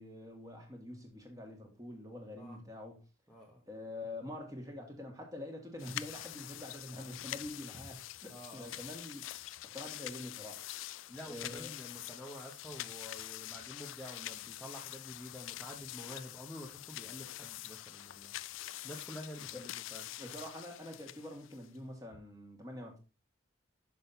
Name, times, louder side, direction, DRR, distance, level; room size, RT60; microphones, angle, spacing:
voice 1, 0.0-3.0 3.7-9.2 9.6-10.6 11.2-11.7 19.4-19.6 20.2-23.0, left 1 dB, 15° right, 2 dB, 1.7 m, -46 dB
voice 2, 3.3-3.6 8.3-8.7 11.1-18.3 18.8-20.0, left 1 dB, ahead, -3 dB, 1.0 m, -48 dB
sound 1, 5.8-21.8, left 14 dB, 75° left, 0.3 m, -45 dB
6.3 x 5.7 x 4.1 m, 0.30 s
head